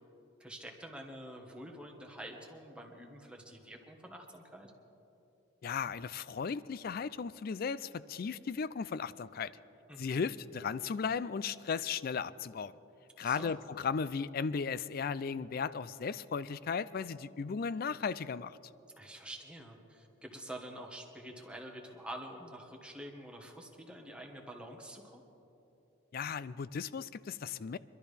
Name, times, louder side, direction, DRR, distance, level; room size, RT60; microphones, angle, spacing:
voice 1, 0.4-4.7 9.9-10.3 13.2-13.5 19.0-25.2, right 1 dB, 5° right, 1 dB, 1.3 m, -47 dB
voice 2, 5.6-9.5 10.0-12.7 13.2-18.6 26.1-27.8, left 6 dB, 45° left, 17 dB, 0.3 m, -36 dB
24.5 x 12.5 x 3.4 m, 3.0 s
head